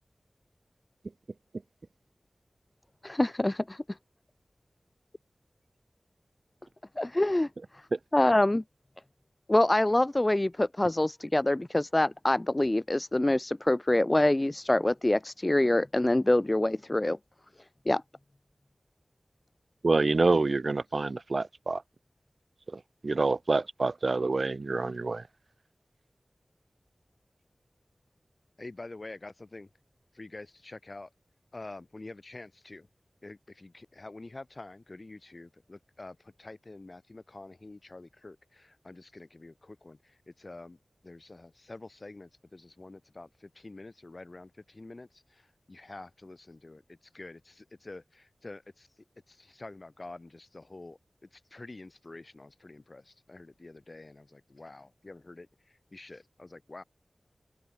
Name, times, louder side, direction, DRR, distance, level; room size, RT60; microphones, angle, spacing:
voice 1, 3.0-3.8 7.0-7.5 8.1-8.6 9.5-17.2 17.9-18.0, left 1 dB, 25° left, 1.2 m, -25 dB
voice 2, 19.8-21.8 22.7-25.2, right 3 dB, 60° right, 0.8 m, -27 dB
voice 3, 28.6-29.7 30.1-31.1 31.5-32.9 33.2-56.8, left 2 dB, 45° left, 5.8 m, -47 dB
open air
wide cardioid pair, 70°, 0 cm